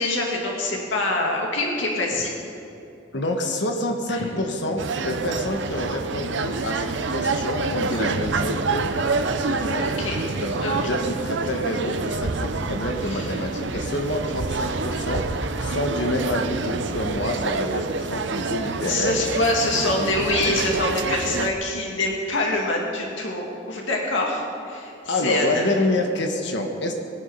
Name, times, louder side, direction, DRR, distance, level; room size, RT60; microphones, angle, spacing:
voice 1, 0.0-2.3 4.1-4.3 9.5-10.2 10.6-10.9 13.0-13.5 18.9-25.7, left 2 dB, 80° left, -1 dB, 2.2 m, -25 dB
voice 2, 3.1-9.0 9.4-9.8 10.4-19.3 19.9-20.3 25.1-26.9, left 1 dB, 65° left, 3 dB, 1.4 m, -27 dB
sound 1, 4.8-21.5, right 3 dB, 70° right, 0.7 m, -27 dB
20.5 x 10.0 x 5.5 m, 2.7 s
head